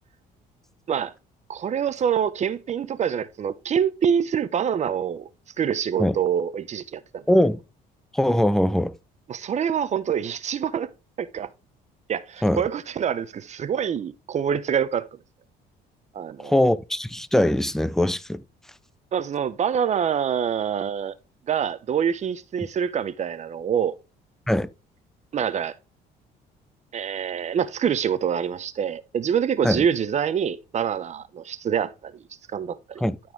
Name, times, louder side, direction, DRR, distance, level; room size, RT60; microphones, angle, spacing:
voice 1, 1.5-5.3 5.6-7.2 9.3-10.9 11.2-11.5 12.1-15.1 16.1-16.6 19.1-21.1 21.5-24.0 25.3-25.7 26.9-32.1 32.5-33.0, right 8 dB, 45° right, 0.9 m, -25 dB
voice 2, 7.3-7.6 8.1-8.9 12.4-12.6 16.4-18.4 24.5-24.7 29.6-29.9 33.0-33.2, left 1 dB, ahead, 0.6 m, -21 dB
12.0 x 4.4 x 3.6 m
cardioid pair, 110°, 17 cm